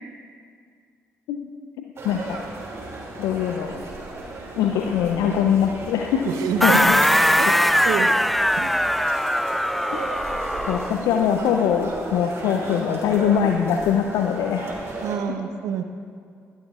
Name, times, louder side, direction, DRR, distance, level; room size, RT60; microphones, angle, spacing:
voice 1, 2.0-2.4 3.2-3.8 4.5-6.3 6.6-7.0 9.9-10.1 10.6-14.7, left 8 dB, 70° left, 4 dB, 0.5 m, -22 dB
sound 1, 2.0-15.2, right 2 dB, 50° right, 3.0 m, -35 dB
voice 2, 6.3-6.8 7.4-7.5 7.8-8.1 8.6-8.7 15.0-15.8, right 8 dB, 70° right, 7 dB, 0.8 m, -27 dB
sound 2, 6.6-11.0, equal, ahead, 0.4 m, -20 dB
19.5 x 12.5 x 2.4 m, 2.2 s
hypercardioid pair, 45°, 6 cm